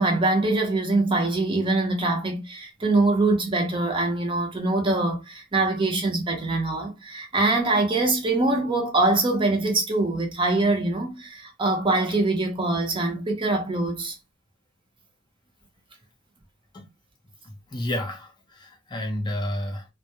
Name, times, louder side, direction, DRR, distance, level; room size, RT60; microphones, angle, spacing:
voice 1, 0.0-14.2, right 2 dB, 25° right, 0.6 m, -23 dB
voice 2, 17.4-19.9, left 1 dB, 20° left, 0.5 m, -31 dB
2.2 x 2.0 x 2.8 m
head